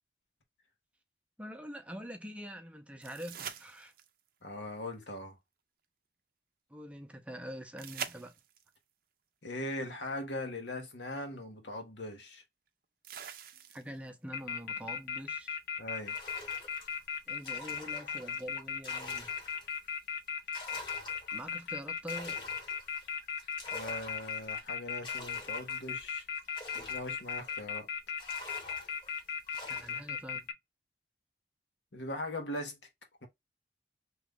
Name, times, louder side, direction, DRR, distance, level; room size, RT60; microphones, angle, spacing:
voice 1, 1.4-3.9 6.7-8.3 13.7-15.6 17.3-19.3 21.3-22.4 29.7-30.5, equal, 5° right, 0.5 m, -45 dB
sound 1, 3.0-4.3 7.8-8.8 10.7-10.8 13.0-14.1 17.0-17.1, right 8 dB, 50° right, 0.5 m, -44 dB
voice 2, 4.4-5.4 9.4-12.4 15.8-16.2 23.7-26.2 26.9-27.9 31.9-32.8, left 1 dB, 85° left, 1.2 m, -40 dB
sound 2, 14.3-30.5, left 7 dB, 55° left, 0.6 m, -36 dB
sound 3, 16.0-19.9 20.3-27.8 28.2-30.1, left 1 dB, 25° left, 1.0 m, -48 dB
3.0 x 2.3 x 3.5 m
head